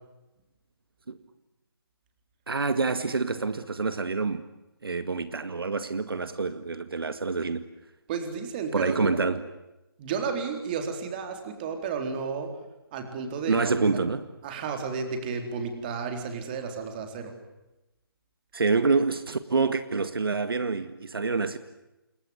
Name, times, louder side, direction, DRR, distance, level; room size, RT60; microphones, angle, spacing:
voice 1, 2.5-4.4 4.8-7.6 8.7-9.5 13.5-14.3 18.5-21.6, right 4 dB, 70° right, 1.9 m, -27 dB
voice 2, 8.1-9.2 10.0-12.5 12.9-14.0 14.4-17.3, right 5 dB, 25° right, 3.9 m, -32 dB
28.0 x 21.5 x 9.7 m
figure-of-eight pair, 160°, 13 cm